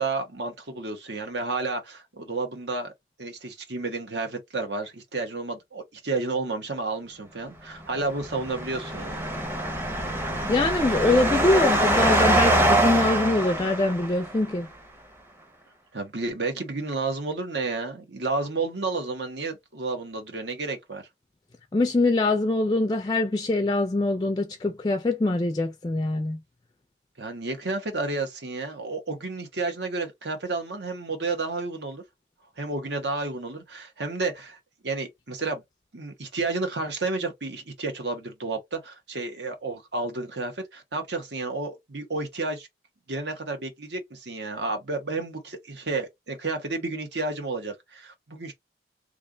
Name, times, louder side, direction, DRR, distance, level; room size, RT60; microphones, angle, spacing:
voice 1, 0.0-2.9 3.2-9.3 15.9-21.1 27.2-32.0 32.6-34.6 34.8-35.6 35.9-42.7 43.1-48.5, right 3 dB, 75° right, 1.2 m, -31 dB
sound 1, 8.1-14.4, right 1 dB, 10° right, 0.7 m, -24 dB
voice 2, 10.5-14.7 21.7-26.4, left 2 dB, 20° left, 0.3 m, -23 dB
3.3 x 2.5 x 3.7 m
head